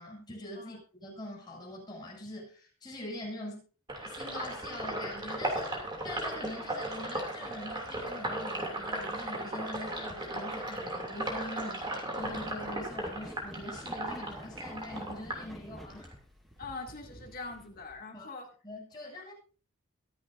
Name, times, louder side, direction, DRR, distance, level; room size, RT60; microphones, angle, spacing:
voice 1, 0.0-3.6 4.0-5.7 6.0-16.1 18.1-18.3 18.6-19.3, left 1 dB, 20° left, -3 dB, 7.6 m, -43 dB
Sink (filling or washing), 3.9-16.2 16.5-17.9, right 1 dB, 20° right, 2.8 m, -36 dB
sound 1, 12.2-16.8 17.1-17.2 17.6-17.7, equal, ahead, 1.0 m, -49 dB
voice 2, 16.6-18.5, left 3 dB, 40° left, 1 dB, 2.4 m, -43 dB
23.5 x 8.0 x 2.7 m, 0.39 s
head